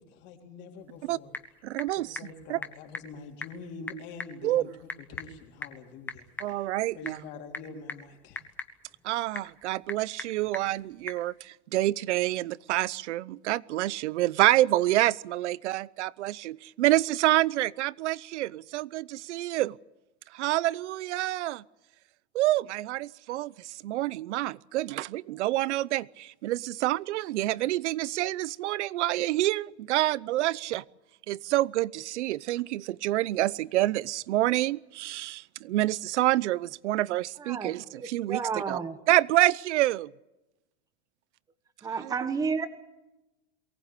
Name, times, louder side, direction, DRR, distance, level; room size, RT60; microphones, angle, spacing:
voice 1, 0.0-1.3 1.9-6.7 6.9-8.5, left 4 dB, 30° left, 3.5 m, -45 dB
Typing / Telephone, 0.8-11.3, left 3 dB, 5° left, 1.1 m, -43 dB
voice 2, 1.6-2.2 2.5-2.6 4.4-4.6 6.4-7.2 9.0-19.8 20.3-21.6 22.3-30.8 31.3-38.8 39.1-40.1 42.0-42.1, right 16 dB, 85° right, 0.8 m, -27 dB
voice 3, 37.4-39.0 41.8-42.7, right 5 dB, 10° right, 1.3 m, -32 dB
23.0 x 18.5 x 8.3 m
supercardioid pair, 175°, 34 cm